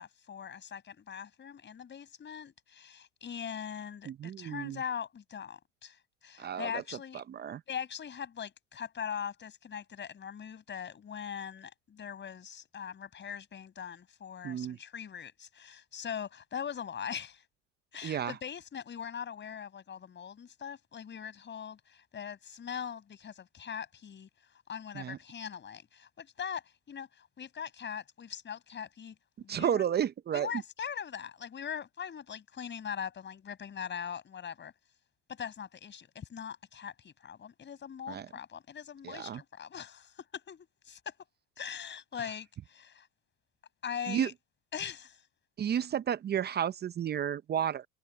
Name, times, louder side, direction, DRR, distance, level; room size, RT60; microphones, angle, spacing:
voice 1, 0.0-7.2 7.7-17.4 17.9-24.3 24.7-29.8 30.3-34.7 35.3-41.1 41.6-43.1 43.8-44.3 44.7-45.2, left 8 dB, 30° left, 6.2 m, -41 dB
voice 2, 4.1-4.8 6.4-6.8 7.1-7.6 14.4-14.8 18.0-18.3 24.9-25.2 29.5-30.5 38.1-38.3 39.0-39.4 44.1-44.3 45.6-47.9, right 9 dB, 25° right, 0.7 m, -32 dB
hypercardioid pair, 100°, 38 cm